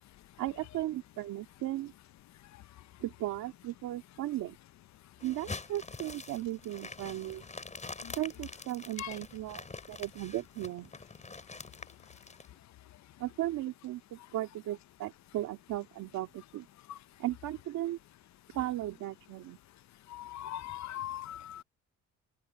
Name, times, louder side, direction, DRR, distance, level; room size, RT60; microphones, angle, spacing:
voice 1, 0.4-1.9 3.0-4.6 5.2-7.4 8.1-10.9 13.2-16.7 17.2-18.0 18.5-19.6, right 15 dB, 85° right, 2.2 m, -36 dB
sound 1, 5.2-12.5, left 3 dB, 25° left, 5.6 m, -45 dB
voice 2, 20.1-21.6, left 12 dB, 65° left, 0.7 m, -40 dB
open air
cardioid pair, 90°, 30 cm